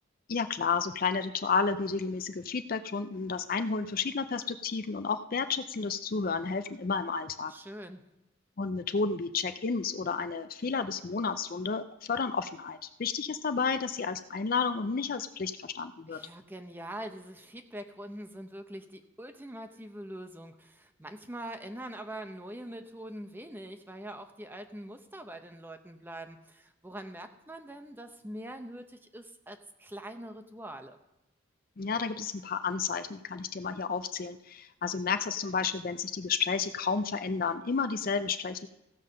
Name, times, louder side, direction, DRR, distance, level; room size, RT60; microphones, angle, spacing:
voice 1, 0.3-7.5 8.6-16.2 31.8-38.7, left 5 dB, 45° left, 10 dB, 0.4 m, -31 dB
voice 2, 7.5-8.0 16.1-31.0, right 1 dB, 10° right, 7 dB, 0.7 m, -43 dB
15.5 x 5.6 x 6.5 m, 0.94 s
head